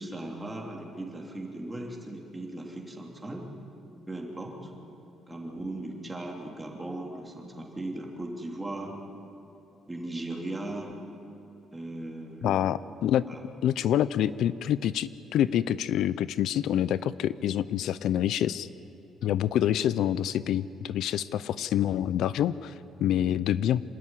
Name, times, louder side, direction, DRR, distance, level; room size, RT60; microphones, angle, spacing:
voice 1, 0.0-3.4 4.1-4.7 5.3-8.9 9.9-10.9 11.7-12.6 13.3-13.4, right 1 dB, 10° right, 0 dB, 3.1 m, -37 dB
voice 2, 12.4-13.3 13.6-18.7 19.2-23.8, left 11 dB, 75° left, 16 dB, 0.5 m, -27 dB
26.5 x 13.5 x 9.9 m, 2.9 s
cardioid pair, 145°, 0 cm